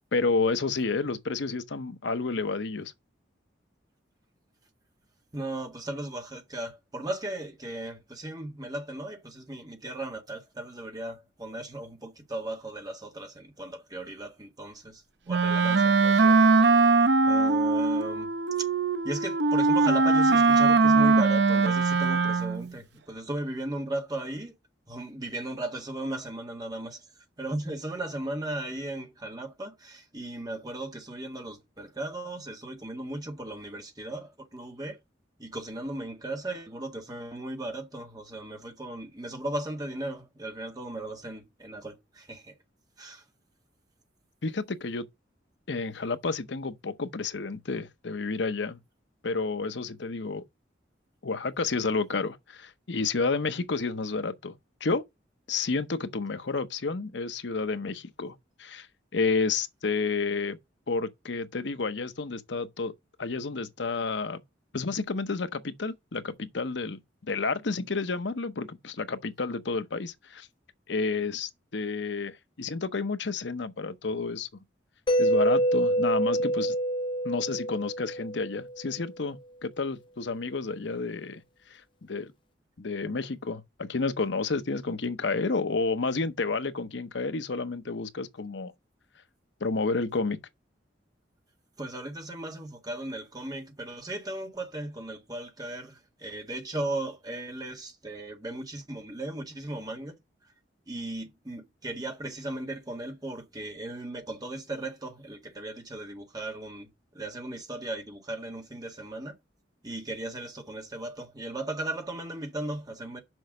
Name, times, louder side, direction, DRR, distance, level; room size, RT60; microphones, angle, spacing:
voice 1, 0.1-2.9 44.4-45.1 45.7-48.8 49.2-50.4 51.2-54.5 54.8-55.0 55.5-58.9 59.1-60.6 60.9-62.9 63.2-64.4 64.7-70.5 70.9-74.5 75.2-76.7 77.2-81.4 81.7-82.3 82.8-88.7 89.6-90.4, left 4 dB, 70° left, 0.8 m, -30 dB
voice 2, 5.3-16.7 17.2-18.3 19.0-24.5 24.9-27.1 27.4-35.0 35.4-42.5 43.0-43.2 91.8-100.1 100.9-109.3 109.8-113.2, right 1 dB, 20° right, 1.7 m, -37 dB
Wind instrument woodwind instrument, 15.3-22.7, right 3 dB, 65° right, 0.7 m, -21 dB
Mallet percussion, 75.1-78.8, right 1 dB, 25° left, 0.5 m, -26 dB
6.3 x 5.8 x 6.4 m
head